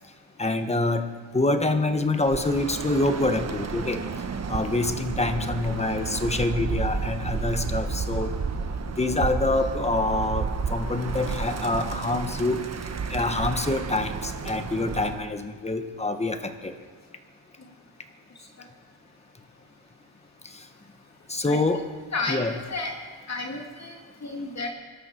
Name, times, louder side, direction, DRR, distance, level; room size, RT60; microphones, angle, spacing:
voice 1, 0.4-1.1 1.3-4.0 4.5-8.3 9.0-12.6 13.1-16.7 21.3-21.8 22.3-22.5, left 2 dB, 15° left, 7 dB, 1.3 m, -26 dB
Bird, 2.2-15.3, right 5 dB, 35° right, 1.2 m, -31 dB
voice 2, 22.1-22.9 23.3-24.7, left 3 dB, 35° left, 2 dB, 2.3 m, -32 dB
25.0 x 12.5 x 4.6 m, 1.5 s
cardioid pair, 110°, 46 cm